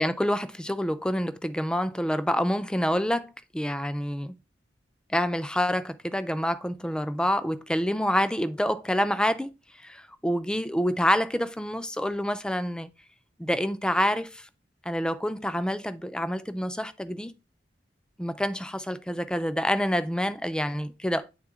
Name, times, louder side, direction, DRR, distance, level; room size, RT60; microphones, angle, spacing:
voice 1, 0.0-4.4 5.1-9.5 9.8-12.9 13.4-14.5 14.9-17.3 18.2-21.3, equal, 5° left, 0.4 m, -27 dB
8.7 x 3.7 x 3.6 m
head